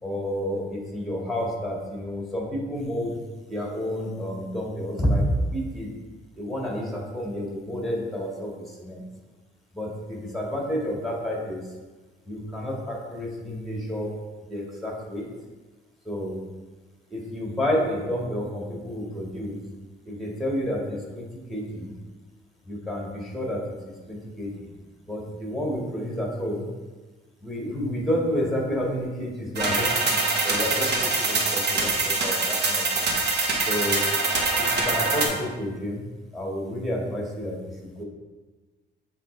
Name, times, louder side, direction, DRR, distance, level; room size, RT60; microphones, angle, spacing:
voice 1, 0.0-3.2 3.5-5.2 5.5-5.9 6.4-9.0 9.7-11.6 12.3-14.1 14.5-15.3 16.0-16.4 17.1-19.6 20.1-21.9 22.6-24.7 25.1-26.7 27.4-33.1 33.7-34.1 34.6-36.0 36.3-38.0, equal, ahead, -2 dB, 1.9 m, -30 dB
sound 1, 29.6-35.3, right 3 dB, 60° right, 1.1 m, -24 dB
7.5 x 4.2 x 3.3 m, 1.3 s
cardioid pair, 90°, 20 cm